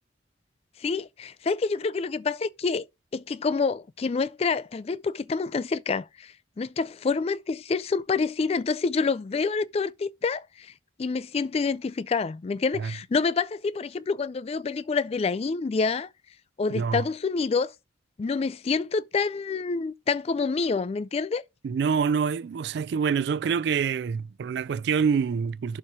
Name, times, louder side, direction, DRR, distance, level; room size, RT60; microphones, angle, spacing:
voice 1, 0.8-2.8 3.1-10.7 11.0-16.1 16.6-17.7 18.2-21.4, left 4 dB, 35° left, 0.3 m, -27 dB
voice 2, 16.7-17.1 21.6-25.8, right 6 dB, 60° right, 0.3 m, -26 dB
7.2 x 3.1 x 5.9 m
head